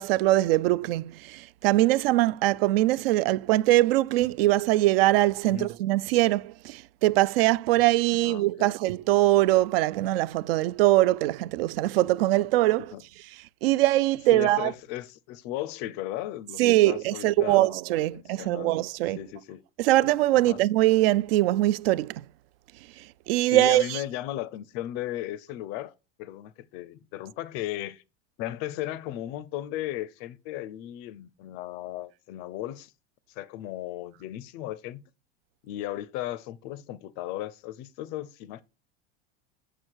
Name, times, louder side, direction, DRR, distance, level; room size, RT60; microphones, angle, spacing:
voice 1, 0.0-12.9 13.6-14.7 16.6-19.2 19.8-22.2 23.3-24.0, right 16 dB, 70° right, 0.5 m, -22 dB
voice 2, 5.4-5.7 8.1-8.7 12.8-13.0 14.3-17.8 18.1-18.8 19.2-19.6 20.3-20.6 23.4-25.9 26.2-28.0 28.4-32.9 33.4-35.0 35.6-38.6, left 13 dB, 35° left, 0.4 m, -36 dB
8.0 x 6.3 x 4.5 m
supercardioid pair, 175°, 30 cm